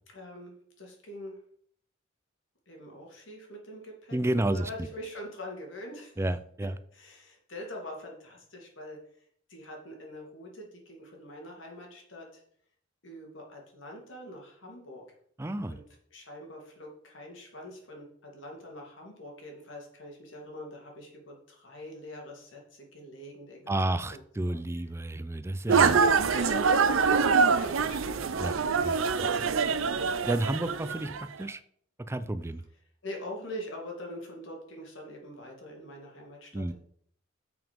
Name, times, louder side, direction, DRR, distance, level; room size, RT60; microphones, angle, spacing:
voice 1, 0.1-1.4 2.7-4.2 4.5-6.2 6.9-9.0 9.5-12.4 13.0-15.0 15.7-15.8 16.1-23.7 24.1-24.2 24.5-24.6 25.7-28.4 28.8-30.1 30.4-30.7 33.0-36.7, left 1 dB, 70° left, 0 dB, 2.5 m, -44 dB
voice 2, 4.1-4.9 6.2-6.8 15.4-15.8 23.7-26.1 28.4-29.0 30.3-31.6 32.1-32.6 36.5-36.7, right 1 dB, 15° right, 13 dB, 0.4 m, -31 dB
sound 1, 25.7-31.2, right 5 dB, 80° right, 0.6 m, -25 dB
7.2 x 5.9 x 5.2 m, 0.62 s
head